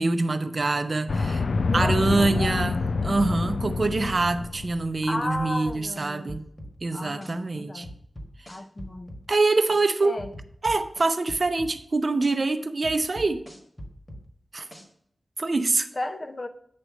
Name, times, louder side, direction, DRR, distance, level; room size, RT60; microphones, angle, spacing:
voice 1, 0.0-1.4 1.7-2.8 3.0-6.5 6.8-7.9 9.3-10.2 10.6-13.4 14.5-14.7 15.4-15.9, right 3 dB, 50° right, 0.6 m, -25 dB
sound 1, 1.1-5.0, left 4 dB, 75° left, 0.3 m, -27 dB
voice 2, 1.6-2.7 5.0-6.4 6.9-7.9 8.5-9.2 10.0-10.3 16.0-16.5, left 1 dB, 35° left, 0.6 m, -34 dB
sound 2, 5.3-6.7 7.2-7.3 7.8-9.2 9.7-9.8 10.2-11.7 12.2-12.3 12.8-14.2 14.7-14.8, equal, 20° left, 1.6 m, -41 dB
9.3 x 3.2 x 6.2 m
wide cardioid pair, 75°, 0 cm